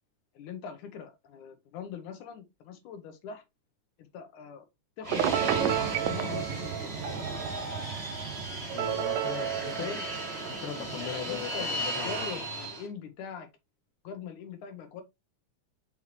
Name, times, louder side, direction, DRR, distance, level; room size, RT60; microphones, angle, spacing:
voice 1, 0.3-3.4 4.0-4.7 5.0-7.2 7.5-7.7 9.7-10.0 10.9-13.5 14.0-15.0, left 6 dB, 80° left, 2.5 m, -42 dB
Fixed-wing aircraft airplane, 5.0-12.9, right 2 dB, 25° right, 1.7 m, -35 dB
Telephone, 5.1-6.2, right 11 dB, 85° right, 1.5 m, -27 dB
sound 1, 5.3-11.1, right 9 dB, 65° right, 1.5 m, -34 dB
voice 2, 8.7-10.0 10.5-12.3, left 7 dB, 55° left, 1.8 m, -39 dB
5.9 x 5.5 x 3.0 m
omnidirectional pair, 3.6 m